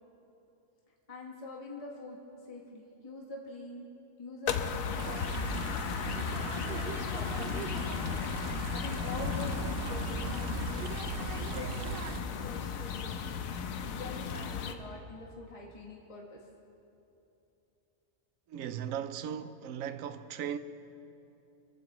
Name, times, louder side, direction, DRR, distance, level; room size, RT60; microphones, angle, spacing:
voice 1, 1.1-2.2 2.4-3.9 4.2-5.7 6.0-7.7 7.9-8.2 8.5-13.4 13.9-16.4, left 2 dB, 25° left, 1.4 m, -45 dB
sound 1, 4.5-14.7, left 6 dB, 90° left, 1.2 m, -35 dB
sound 2, 5.0-12.2, right 6 dB, 55° right, 0.7 m, -39 dB
voice 2, 18.5-20.6, right 9 dB, 90° right, 1.0 m, -37 dB
25.5 x 15.0 x 3.0 m
omnidirectional pair, 1.4 m